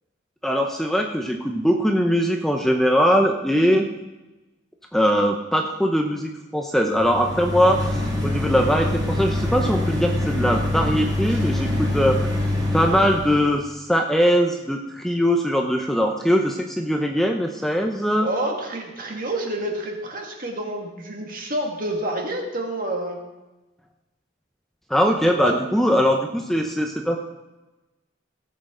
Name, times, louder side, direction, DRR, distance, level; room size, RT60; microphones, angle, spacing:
voice 1, 0.4-3.8 4.9-12.2 12.7-18.3 24.9-27.2, equal, ahead, 2 dB, 0.7 m, -21 dB
sound 1, 6.9-13.5, left 1 dB, 20° right, 4.0 m, -25 dB
voice 2, 18.2-23.2 25.4-25.5, right 1 dB, 45° right, 1 dB, 2.1 m, -28 dB
17.0 x 7.5 x 3.8 m, 1.1 s
head